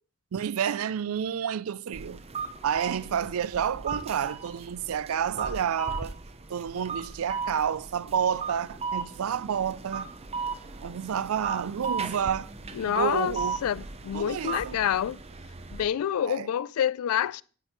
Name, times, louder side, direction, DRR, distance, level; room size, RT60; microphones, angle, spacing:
voice 1, 0.3-2.2 2.6-6.2 6.5-10.1 10.8-12.5 12.9-13.6 14.1-14.8 16.3-16.5, right 8 dB, 75° right, 0.4 m, -29 dB
sound 1, 1.9-15.8, right 4 dB, 30° right, 0.7 m, -37 dB
voice 2, 12.7-13.3 13.6-15.2 15.7-17.4, left 9 dB, 80° left, 0.3 m, -27 dB
9.9 x 9.8 x 3.1 m
head